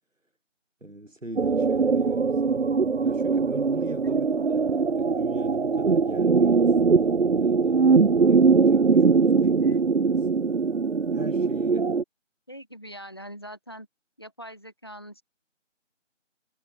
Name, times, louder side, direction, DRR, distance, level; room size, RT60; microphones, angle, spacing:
voice 1, 0.8-2.7 3.0-7.9 8.1-9.8 10.1-10.2 11.1-11.9, right 1 dB, 90° right, 3.9 m, -40 dB
sound 1, 1.4-12.0, right 5 dB, 65° right, 0.5 m, -21 dB
voice 2, 12.5-13.9 14.2-15.2, equal, 20° left, 1.8 m, -42 dB
figure-of-eight pair, 170°, 37 cm